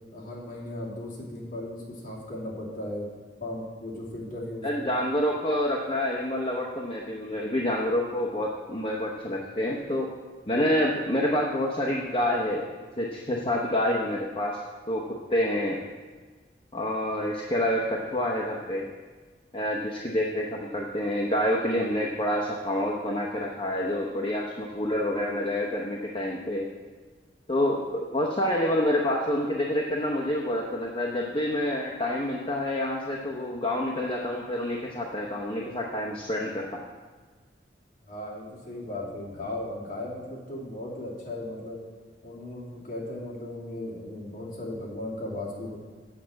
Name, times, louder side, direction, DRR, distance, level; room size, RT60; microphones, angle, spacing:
voice 1, 0.1-3.1 3.4-4.6 38.1-41.8 42.2-45.8, left 1 dB, 50° left, -6 dB, 2.7 m, -36 dB
voice 2, 4.6-10.1 10.5-12.6 13.0-14.6 14.9-15.0 15.3-15.8 16.7-18.9 19.5-26.7 27.5-36.8, left 1 dB, 30° left, -2 dB, 0.8 m, -27 dB
8.3 x 5.7 x 7.5 m, 1.4 s
head